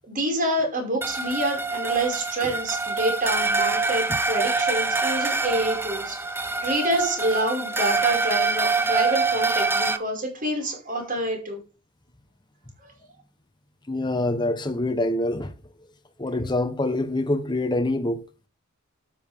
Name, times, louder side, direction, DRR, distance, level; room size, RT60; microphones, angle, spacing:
voice 1, 0.1-11.6 12.8-12.9, right 1 dB, 40° right, 5.6 m, -27 dB
sound 1, 1.0-10.0, right 3 dB, 10° right, 1.0 m, -25 dB
voice 2, 13.9-15.5 16.2-18.2, left 1 dB, 20° left, 1.1 m, -25 dB
12.0 x 8.9 x 3.6 m
head